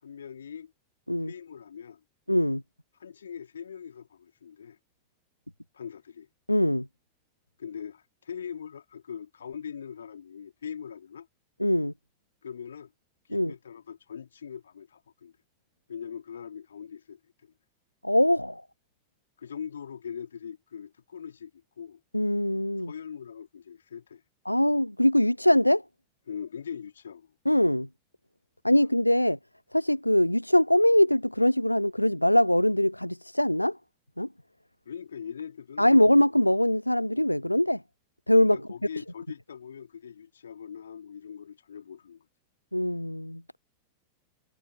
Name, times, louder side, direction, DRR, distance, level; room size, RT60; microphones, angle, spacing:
voice 1, 0.0-0.7 1.2-2.0 3.0-4.8 5.7-6.3 7.6-11.3 12.4-12.9 13.3-15.3 15.9-17.5 19.4-22.0 22.8-24.2 26.3-27.3 34.9-36.0 38.4-42.3, left 7 dB, 70° left, 4.0 m, -41 dB
voice 2, 2.3-2.6 6.5-6.9 11.6-11.9 13.3-13.5 18.0-18.6 22.1-22.9 24.5-25.8 27.5-27.9 28.6-29.4 29.7-33.8 34.2-34.3 35.8-37.8 38.3-38.6 42.7-43.4, left 1 dB, 90° left, 0.4 m, -22 dB
figure-of-eight pair, 90°, 0 cm